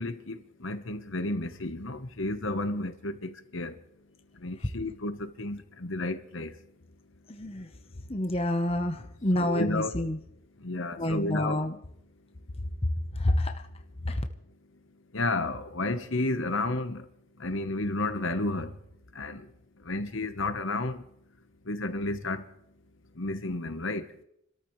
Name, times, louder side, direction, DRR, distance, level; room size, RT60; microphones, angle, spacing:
voice 1, 0.0-3.7 4.4-6.5 9.4-9.9 10.6-11.6 15.1-17.0 17.4-18.7 19.1-19.4 19.9-21.0 21.7-22.4 23.2-24.1, left 2 dB, 65° left, 1.1 m, -32 dB
voice 2, 7.3-7.7 8.1-10.2 11.0-11.7 12.8-13.7 14.0-14.2, left 1 dB, 30° left, 1.0 m, -28 dB
29.0 x 13.5 x 3.2 m
head